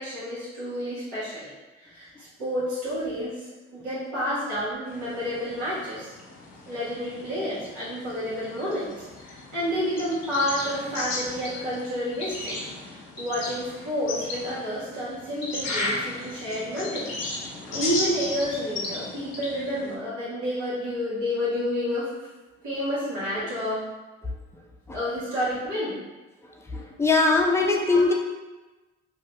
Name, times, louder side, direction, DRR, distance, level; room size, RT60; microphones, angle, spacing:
voice 1, 0.0-1.5 1.8-3.4 3.7-6.1 6.7-8.9 9.2-17.2 17.5-22.1 22.6-23.9 24.9-26.1 27.9-28.0, equal, 85° right, -10 dB, 1.5 m, -30 dB
sound 1, 4.9-19.9, left 2 dB, 60° left, 0.9 m, -35 dB
voice 2, 26.7-28.1, left 3 dB, 10° left, 0 dB, 0.5 m, -22 dB
2.7 x 2.4 x 3.1 m, 1.2 s
supercardioid pair, 65°, 29 cm